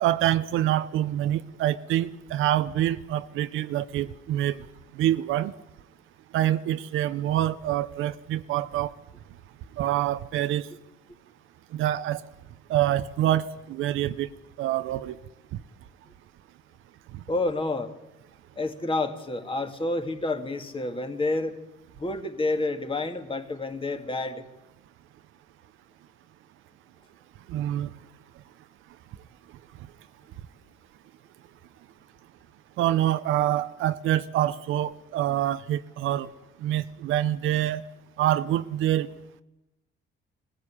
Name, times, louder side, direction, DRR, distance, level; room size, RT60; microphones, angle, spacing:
voice 1, 0.0-4.6 5.0-5.5 6.3-8.9 9.8-10.7 11.7-12.2 12.7-14.3 14.6-15.2 17.1-17.2 27.5-27.9 32.8-36.3 36.6-37.8 38.2-39.1, right 12 dB, 85° right, 12 dB, 0.7 m, -26 dB
voice 2, 17.3-17.9 18.6-21.6 22.0-24.5, left 2 dB, 25° left, 6 dB, 2.3 m, -29 dB
20.5 x 15.0 x 9.9 m, 0.97 s
cardioid pair, 90°, 20 cm